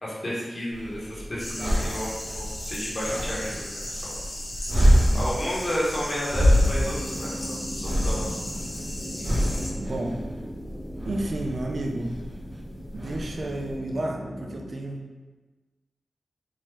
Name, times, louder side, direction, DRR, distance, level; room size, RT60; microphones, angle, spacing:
voice 1, 0.0-4.2 5.1-8.4 9.2-9.3, equal, 45° left, -7 dB, 1.3 m, -32 dB
sound 1, 0.7-13.8, equal, 40° right, 1.3 m, -27 dB
sound 2, 1.4-9.7, left 1 dB, 70° left, 1.0 m, -37 dB
voice 2, 4.6-5.3 9.8-10.2 11.0-12.2 12.9-15.0, right 1 dB, 60° right, 1 dB, 0.5 m, -32 dB
sound 3, 6.5-14.6, equal, 15° right, 0.8 m, -38 dB
3.6 x 2.8 x 3.2 m, 1.3 s
cardioid pair, 60°, 0 cm